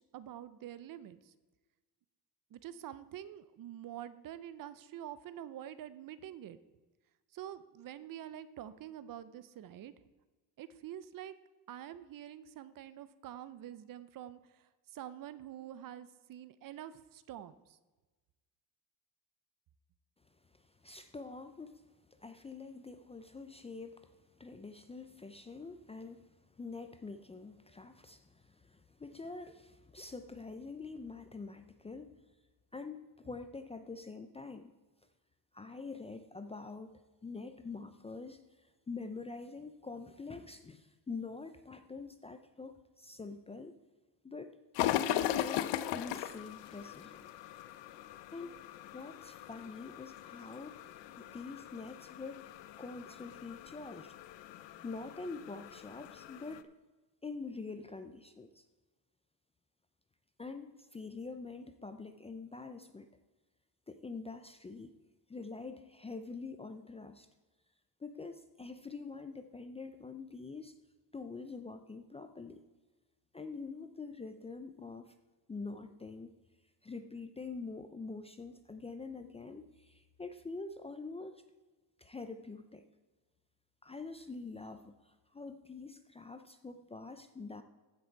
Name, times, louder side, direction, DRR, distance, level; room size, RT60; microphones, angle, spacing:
voice 1, 0.0-1.3 2.5-6.6 7.3-9.9 10.6-11.3 11.7-17.8, right 11 dB, 50° right, 15 dB, 0.7 m, -47 dB
voice 2, 20.5-21.8 22.1-32.2 32.7-34.7 35.5-43.8 44.2-47.3 48.3-48.6 48.9-50.7 51.2-54.1 54.8-56.6 57.2-58.6 60.4-63.1 63.9-64.9 65.3-67.3 68.0-70.7 71.1-72.6 73.3-75.1 75.5-76.4 76.8-81.4 82.0-82.9 83.8-87.6, left 4 dB, 15° left, 8 dB, 0.4 m, -45 dB
sound 1, 44.7-56.6, left 12 dB, 90° left, 0.7 m, -39 dB
15.0 x 6.4 x 4.6 m, 1.2 s
cardioid pair, 145°, 42 cm